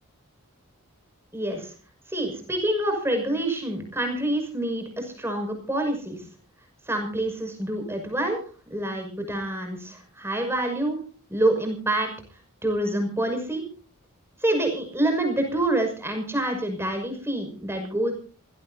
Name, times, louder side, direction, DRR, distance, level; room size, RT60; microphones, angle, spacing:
voice 1, 1.3-1.7 2.1-6.2 6.9-8.4 8.7-11.0 11.3-12.1 12.6-13.6 14.4-18.1, right 1 dB, 10° right, 4 dB, 6.1 m, -27 dB
27.0 x 17.5 x 2.8 m, 0.40 s
head